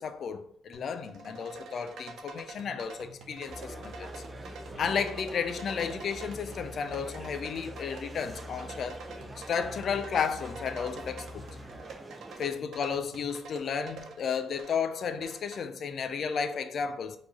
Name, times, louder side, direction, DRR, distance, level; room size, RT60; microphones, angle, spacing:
voice 1, 0.0-4.1 4.8-9.0 9.4-11.5 12.4-17.2, left 6 dB, 60° left, 0.4 m, -33 dB
sound 1, 0.7-15.6, right 3 dB, 75° right, 0.9 m, -47 dB
sound 2, 3.5-11.8, left 2 dB, 10° left, 2.0 m, -47 dB
sound 3, 3.5-12.5, right 2 dB, 25° right, 0.6 m, -46 dB
4.4 x 2.9 x 4.1 m
cardioid pair, 90°, 0 cm